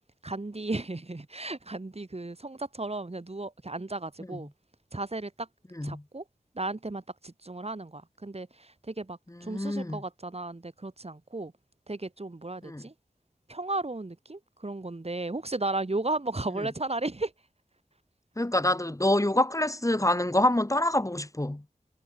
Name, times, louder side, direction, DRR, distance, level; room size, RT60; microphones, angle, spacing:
voice 1, 0.2-4.5 4.9-5.5 5.8-6.2 6.5-11.5 11.9-12.9 13.5-17.3, right 2 dB, 45° right, 5.7 m, -34 dB
voice 2, 9.5-10.0 12.6-12.8 18.4-21.6, left 1 dB, 20° left, 3.4 m, -26 dB
wide cardioid pair, 65°, 14 cm